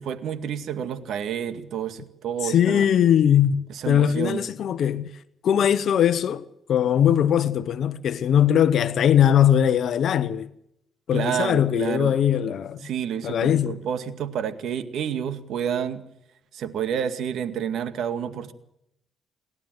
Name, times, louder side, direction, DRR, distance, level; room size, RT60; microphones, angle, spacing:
voice 1, 0.0-2.8 3.7-4.4 11.1-12.2 12.8-16.0 16.5-18.5, right 8 dB, 75° right, 2.0 m, -29 dB
voice 2, 2.4-5.2 5.4-10.5 11.1-12.8 13.2-13.8, left 9 dB, 65° left, 0.9 m, -20 dB
28.5 x 12.0 x 7.8 m
cardioid pair, 90°, 0 cm